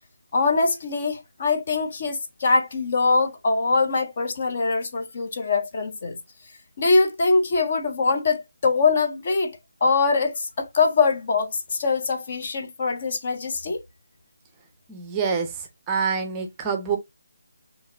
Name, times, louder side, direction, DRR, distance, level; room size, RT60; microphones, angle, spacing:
voice 1, 0.3-6.2 6.8-13.8, left 4 dB, 40° left, 0.9 m, -23 dB
voice 2, 14.9-17.0, right 6 dB, 15° right, 0.6 m, -26 dB
5.5 x 3.0 x 2.6 m
figure-of-eight pair, 155°, 0 cm